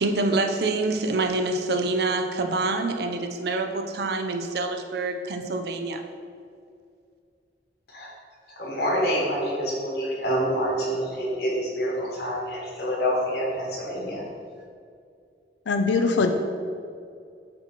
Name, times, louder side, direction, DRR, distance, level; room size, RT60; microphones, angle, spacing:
voice 1, 0.0-6.0, right 3 dB, 65° right, 5 dB, 0.5 m, -26 dB
voice 2, 8.5-14.2, equal, 65° left, -3 dB, 1.4 m, -27 dB
voice 3, 15.7-16.3, left 4 dB, 90° left, 6 dB, 0.4 m, -21 dB
7.5 x 2.9 x 4.4 m, 2.3 s
head